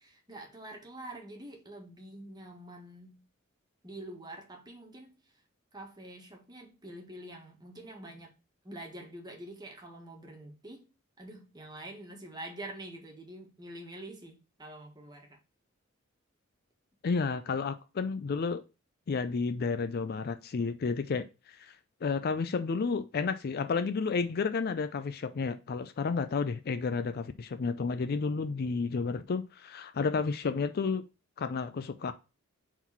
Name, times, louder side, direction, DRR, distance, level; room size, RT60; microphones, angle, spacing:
voice 1, 0.0-3.2 3.8-5.3 5.7-8.3 8.6-10.9 11.2-15.4, right 1 dB, 20° right, 1.5 m, -46 dB
voice 2, 17.0-18.6 19.1-21.3 21.6-21.7 22.0-31.0 31.4-32.1, left 4 dB, 50° left, 0.4 m, -31 dB
4.6 x 3.9 x 5.5 m
head